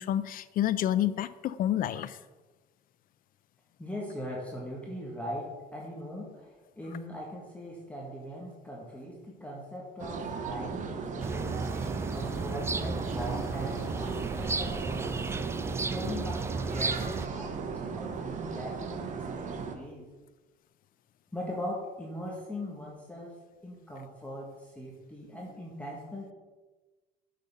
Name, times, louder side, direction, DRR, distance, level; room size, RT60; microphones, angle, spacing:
voice 1, 0.0-2.2, left 11 dB, 55° left, 15 dB, 0.5 m, -29 dB
voice 2, 3.8-11.6 12.1-20.1 21.3-23.3 23.6-26.3, left 1 dB, 10° left, -3 dB, 1.5 m, -40 dB
sound 1, 10.0-19.8, right 6 dB, 50° right, 1.0 m, -37 dB
sound 2, 11.2-17.3, right 3 dB, 15° right, 0.4 m, -34 dB
6.6 x 5.3 x 5.4 m, 1.2 s
cardioid pair, 110°, 17 cm